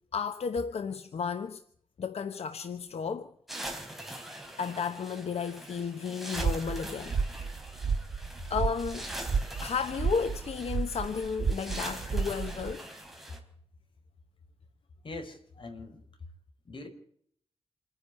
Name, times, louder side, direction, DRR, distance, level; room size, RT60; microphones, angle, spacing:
voice 1, 0.1-1.6 2.0-3.3 4.6-7.1 8.5-9.1 9.6-12.9, left 6 dB, 80° left, 1.2 m, -33 dB
sound 1, 3.5-13.4, right 1 dB, ahead, 4.1 m, -43 dB
sound 2, 6.3-12.7, right 5 dB, 90° right, 1.6 m, -32 dB
voice 2, 15.0-16.0 16.7-16.9, left 2 dB, 55° left, 4.9 m, -42 dB
27.5 x 10.5 x 9.7 m
wide cardioid pair, 120°, 11 cm